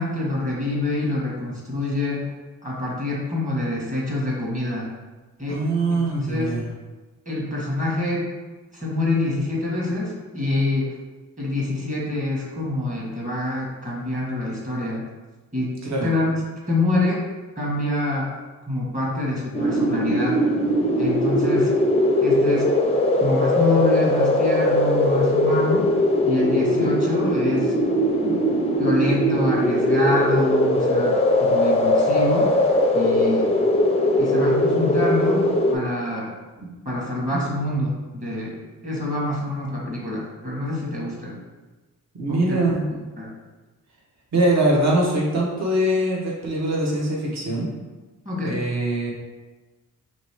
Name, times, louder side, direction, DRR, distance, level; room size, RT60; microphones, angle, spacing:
voice 1, 0.0-2.3 2.6-4.9 5.4-5.6 5.9-6.6 7.2-8.3 8.7-10.9 11.4-15.0 15.5-15.7 16.0-17.2 17.6-18.3 18.7-20.4 21.0-21.7 22.2-22.7 23.2-25.9 26.2-27.7 28.2-28.4 28.8-32.5 32.9-33.5 34.2-35.4 35.7-36.3 36.8-41.4 42.3-42.7 43.2-43.3 48.2-48.6, left 2 dB, 25° right, -4 dB, 1.4 m, -26 dB
voice 2, 5.5-6.6 15.8-16.1 26.8-26.9 37.3-37.4 42.2-42.9 44.3-47.7 48.4-49.1, right 1 dB, 50° right, -3 dB, 1.1 m, -22 dB
sound 1, 19.5-35.7, left 1 dB, 20° left, 0.4 m, -20 dB
3.1 x 3.0 x 4.5 m, 1.2 s
cardioid pair, 100°, 34 cm